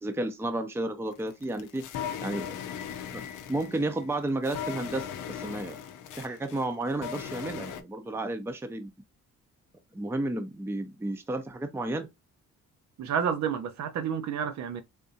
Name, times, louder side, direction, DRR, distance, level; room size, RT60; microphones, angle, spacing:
voice 1, 0.0-1.9 2.2-2.5 3.1-3.2 3.5-5.8 6.2-8.9 9.9-12.1, right 2 dB, 10° right, 0.5 m, -32 dB
sound 1, 1.1-7.8, left 8 dB, 90° left, 0.6 m, -38 dB
voice 2, 13.0-14.8, right 7 dB, 65° right, 0.7 m, -30 dB
3.6 x 2.6 x 2.7 m
cardioid pair, 90°, 30 cm